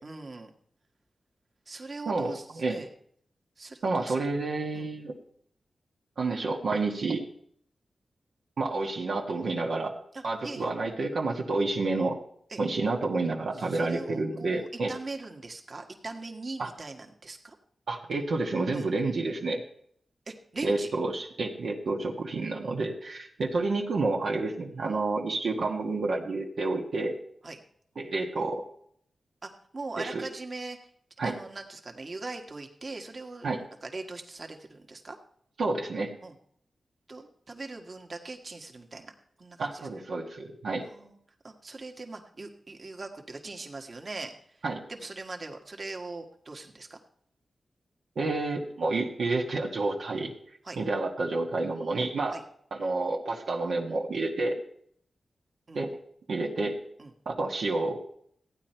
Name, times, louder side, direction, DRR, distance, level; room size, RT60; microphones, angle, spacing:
voice 1, 0.0-0.5 1.7-2.9 3.6-4.2 4.7-4.9 10.1-10.7 12.5-12.6 13.5-17.5 18.7-18.9 20.3-20.9 27.4-27.6 29.4-30.8 31.2-33.6 33.8-35.2 36.2-36.3 37.1-39.1 39.4-39.9 40.9-41.2 41.4-44.3 44.9-47.0 50.6-50.8 52.3-52.4 55.7-55.8 57.0-57.1, right 3 dB, 45° right, 3 dB, 1.6 m, -41 dB
voice 2, 2.1-2.8 3.8-5.1 6.2-7.2 8.6-9.9 10.2-12.2 12.6-14.9 16.6-16.7 17.9-19.6 20.6-27.2 27.9-28.6 30.0-30.2 31.2-31.4 33.4-33.6 35.6-36.1 39.6-40.8 44.6-44.8 48.1-50.3 50.8-52.4 52.7-54.6 55.7-55.9 56.3-56.8 57.2-58.0, right 3 dB, 80° right, -1 dB, 1.4 m, -29 dB
14.5 x 9.3 x 4.5 m, 0.66 s
cardioid pair, 60°, 0 cm